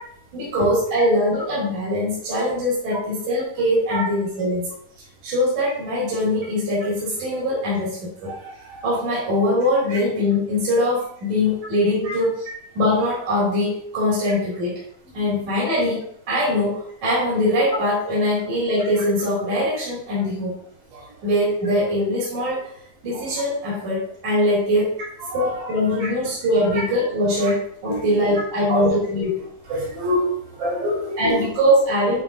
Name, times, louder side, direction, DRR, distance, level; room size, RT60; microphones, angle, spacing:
voice 1, 0.3-4.6 5.2-8.3 8.8-12.4 12.7-14.7 15.1-20.5 21.2-22.7 23.0-25.0 25.3-29.4 31.2-32.2, left 1 dB, 70° right, -7 dB, 4.1 m, -22 dB
voice 2, 25.2-25.6 26.0-26.1 27.4-27.5 27.9-28.1 28.7-28.9 29.7-31.4, equal, 85° right, -9 dB, 5.0 m, -26 dB
10.5 x 5.4 x 2.6 m, 0.69 s
omnidirectional pair, 3.5 m